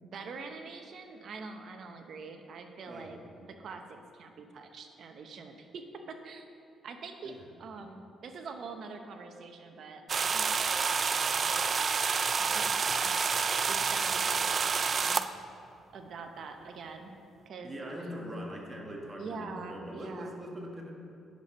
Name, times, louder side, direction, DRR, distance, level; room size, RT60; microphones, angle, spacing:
voice 1, 0.0-3.2 3.5-6.5 6.8-10.5 11.1-11.5 12.4-13.1 13.7-15.2 15.9-17.1 17.5-17.8 19.1-20.4, right 4 dB, 60° right, 6 dB, 0.9 m, -44 dB
voice 2, 2.8-3.2 7.2-7.3 17.6-20.9, equal, 25° right, 0 dB, 1.7 m, -42 dB
sound 1, 10.1-15.3, right 5 dB, 45° right, 0.4 m, -28 dB
9.3 x 6.9 x 5.6 m, 2.7 s
cardioid pair, 90°, 0 cm